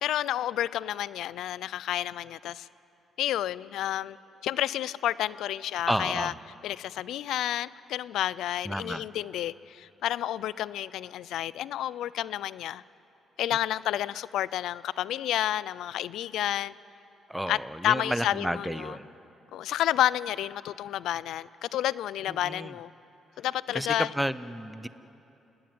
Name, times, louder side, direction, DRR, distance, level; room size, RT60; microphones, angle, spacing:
voice 1, 0.0-2.7 3.2-4.2 4.4-6.3 6.6-12.8 13.4-16.7 17.5-17.6 17.8-19.0 19.5-22.9 23.4-24.1, left 12 dB, 80° left, 19 dB, 0.5 m, -30 dB
voice 2, 5.9-6.4 8.6-9.1 17.3-19.1 22.3-22.7 23.7-24.9, equal, 5° right, 14 dB, 0.9 m, -31 dB
29.0 x 18.0 x 9.5 m, 2.9 s
cardioid pair, 90°, 0 cm